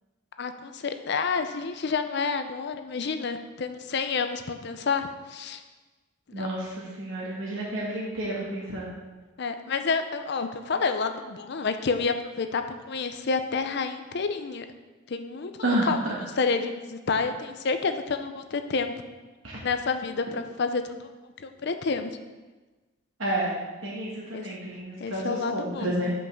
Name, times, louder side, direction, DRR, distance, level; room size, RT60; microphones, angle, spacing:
voice 1, 0.4-5.6 6.3-6.5 9.4-14.7 15.1-16.0 16.4-19.1 19.6-21.1 21.4-22.2 24.3-24.5 25.0-25.9, left 4 dB, 55° left, 8 dB, 0.5 m, -29 dB
voice 2, 6.3-8.9 15.6-16.1 23.2-23.6 23.8-26.1, right 1 dB, 65° right, -5 dB, 1.5 m, -30 dB
5.6 x 5.4 x 6.3 m, 1.2 s
head